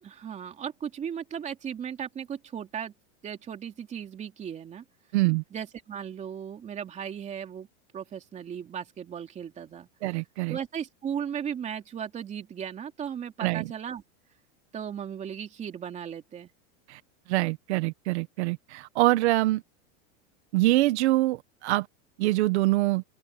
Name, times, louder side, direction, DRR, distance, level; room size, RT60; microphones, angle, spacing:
voice 1, 0.0-2.9 3.2-4.8 5.5-7.7 7.9-9.9 10.5-14.0 14.7-16.5, right 8 dB, 20° right, 3.0 m, -36 dB
voice 2, 5.1-5.4 10.0-10.6 13.4-13.7 16.9-17.0 17.3-19.6 20.5-21.9 22.2-23.0, right 18 dB, 60° right, 1.1 m, -24 dB
open air
supercardioid pair, 170°, 39 cm